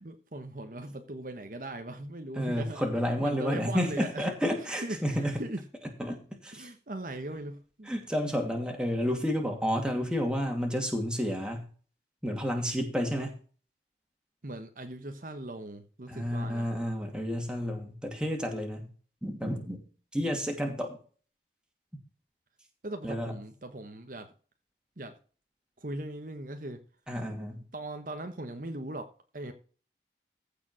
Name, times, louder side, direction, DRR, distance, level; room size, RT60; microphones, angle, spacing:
voice 1, 0.0-2.9 3.2-4.5 4.8-5.6 6.5-7.9 14.4-16.7 22.8-24.3 25.0-25.2 25.8-26.8 27.7-29.5, right 1 dB, 50° right, 1.1 m, -39 dB
voice 2, 2.4-5.4 6.0-6.7 7.9-11.7 12.2-13.3 16.1-18.9 19.2-19.8 20.1-21.0 23.0-23.3 27.1-27.6, equal, 5° right, 2.5 m, -31 dB
15.0 x 5.1 x 6.2 m
head